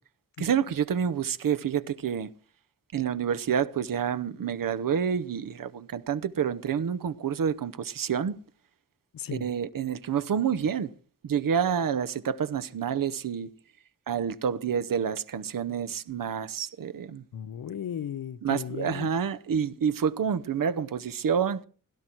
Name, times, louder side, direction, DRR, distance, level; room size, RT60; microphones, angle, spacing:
voice 1, 0.4-2.3 2.9-8.4 9.3-10.9 11.2-13.5 14.1-17.2 18.4-21.7, right 7 dB, 80° right, 0.8 m, -28 dB
voice 2, 9.1-9.5 17.3-19.1, left 9 dB, 85° left, 0.7 m, -36 dB
16.5 x 12.0 x 4.5 m
wide cardioid pair, 75°, 33 cm